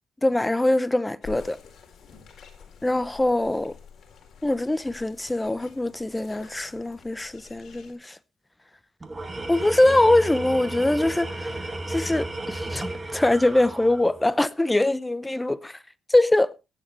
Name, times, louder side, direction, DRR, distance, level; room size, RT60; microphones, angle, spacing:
voice 1, 0.2-1.6 2.8-3.8 4.4-8.2 9.5-15.8 16.1-16.5, left 1 dB, 10° left, 0.7 m, -23 dB
sound 1, 1.2-7.9, left 7 dB, 55° left, 4.3 m, -48 dB
Tools, 9.0-14.4, right 2 dB, 25° right, 2.1 m, -33 dB
16.0 x 10.5 x 3.2 m
cardioid pair, 90°, 0 cm